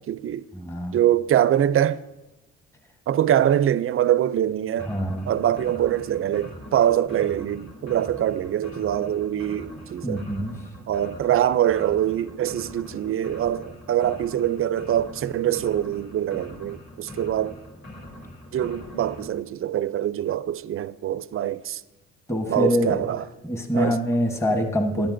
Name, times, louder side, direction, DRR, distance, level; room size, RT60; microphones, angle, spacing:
voice 1, 0.0-0.5 0.9-2.0 3.1-4.9 5.3-10.2 10.9-17.6 18.5-21.8 22.5-23.3 23.7-24.0, right 11 dB, 45° right, 0.4 m, -24 dB
voice 2, 0.5-1.0 4.9-5.3 10.0-10.5 22.3-23.0 23.4-25.1, equal, 10° left, 1.1 m, -24 dB
sound 1, 4.8-19.3, left 1 dB, 35° left, 2.5 m, -42 dB
17.5 x 10.5 x 2.6 m
cardioid pair, 90°, 30 cm